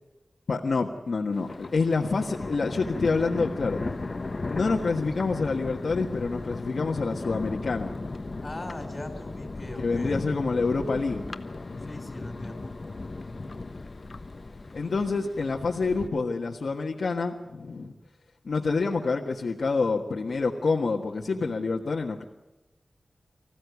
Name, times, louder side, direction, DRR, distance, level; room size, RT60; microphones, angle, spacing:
voice 1, 0.5-3.8 4.4-7.9 9.8-11.2 14.7-17.9 18.4-22.2, left 4 dB, 75° left, 0 dB, 1.5 m, -27 dB
Thunder, 1.3-16.1, left 3 dB, 45° left, 1.1 m, -36 dB
voice 2, 8.4-10.3 11.9-12.7, left 1 dB, 25° left, 4 dB, 3.5 m, -39 dB
25.5 x 15.5 x 8.3 m, 1.1 s
wide cardioid pair, 100°, 0 cm